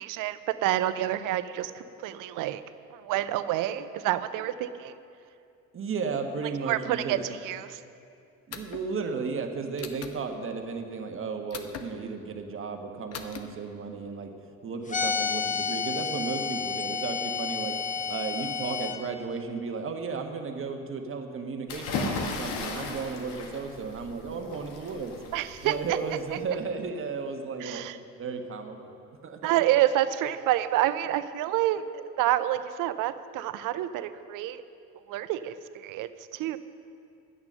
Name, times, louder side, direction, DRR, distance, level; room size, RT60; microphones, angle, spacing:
voice 1, 0.0-2.6 2.9-5.0 6.7-7.8 25.3-26.0 26.3-26.4 27.6-28.0 29.4-34.6 35.1-36.6, right 13 dB, 45° right, 13 dB, 0.6 m, -28 dB
voice 2, 5.7-7.2 8.5-14.3 14.6-25.2 25.6-27.8 28.2-29.5, right 5 dB, 25° right, 4 dB, 1.3 m, -34 dB
sound 1, 8.5-8.9 9.8-10.2 11.5-11.9 13.1-13.4, left 7 dB, 35° left, 1.0 m, -39 dB
sound 2, 14.9-19.0, left 5 dB, 15° left, 0.9 m, -30 dB
sound 3, 21.7-26.5, left 3 dB, 60° left, 1.8 m, -36 dB
12.5 x 9.5 x 5.5 m, 2.5 s
figure-of-eight pair, 55°, 46 cm